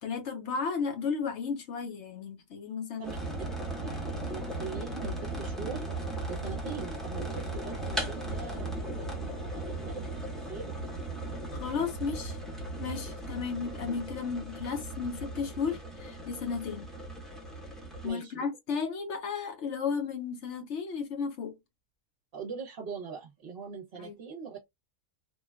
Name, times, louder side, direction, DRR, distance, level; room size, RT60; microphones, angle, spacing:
voice 1, 0.0-3.1 11.5-12.4 12.8-16.9 18.0-21.6 24.0-24.2, left 5 dB, 60° left, 0.9 m, -34 dB
sound 1, 3.0-18.1, right 2 dB, ahead, 0.7 m, -37 dB
voice 2, 4.2-10.8 18.0-18.5 22.3-24.7, right 6 dB, 50° right, 0.9 m, -42 dB
3.0 x 2.2 x 2.2 m
omnidirectional pair, 1.5 m